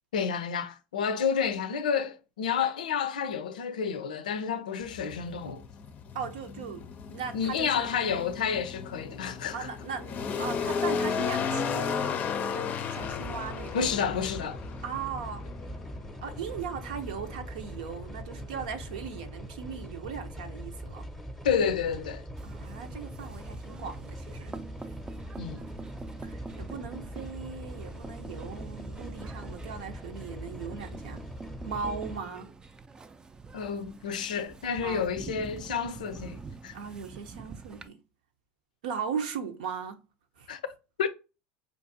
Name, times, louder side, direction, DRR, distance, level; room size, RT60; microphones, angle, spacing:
voice 1, 0.1-5.6 7.3-9.7 13.7-14.6 21.4-22.2 25.4-25.6 33.5-36.8 40.5-40.6 41.0-41.1, left 7 dB, 85° left, 0.4 m, -30 dB
sound 1, 4.8-19.3, left 6 dB, 40° left, 0.5 m, -35 dB
voice 2, 6.1-7.9 9.5-12.2 12.5-13.8 14.8-15.4 16.2-21.0 22.4-24.5 26.2-31.2 31.6-32.5 34.8-35.1 36.7-38.0 38.8-40.0 40.4-40.5, right 6 dB, 80° right, 0.8 m, -38 dB
sound 2, 13.0-32.2, equal, 5° left, 0.7 m, -42 dB
sound 3, 22.4-37.9, right 3 dB, 20° right, 0.4 m, -46 dB
4.6 x 2.5 x 2.6 m
hypercardioid pair, 90°, 4 cm